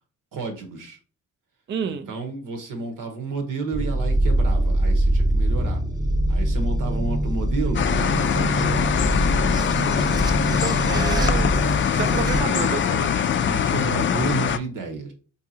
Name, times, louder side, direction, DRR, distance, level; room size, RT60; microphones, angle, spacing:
voice 1, 0.3-1.0 1.8-5.8 6.3-9.1 10.1-10.6 13.4-15.1, right 4 dB, 75° right, 1.0 m, -31 dB
voice 2, 1.7-2.1 10.5-11.5 11.9-13.3, right 7 dB, 35° right, 0.4 m, -30 dB
sound 1, 3.7-12.4, right 1 dB, 10° right, 0.7 m, -23 dB
sound 2, 7.7-14.6, left 8 dB, 40° left, 0.4 m, -23 dB
3.8 x 2.7 x 2.7 m
supercardioid pair, 45°, 33 cm